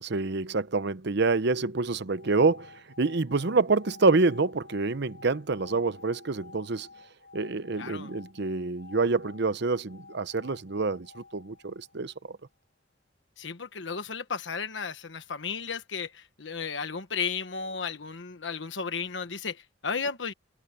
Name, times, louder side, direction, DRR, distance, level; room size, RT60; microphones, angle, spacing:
voice 1, 0.0-2.7 3.0-6.9 7.3-12.1, right 3 dB, 65° right, 0.8 m, -27 dB
sound 1, 2.0-12.2, left 4 dB, 60° left, 4.6 m, -52 dB
voice 2, 7.8-8.1 13.4-20.3, left 5 dB, 75° left, 1.3 m, -34 dB
head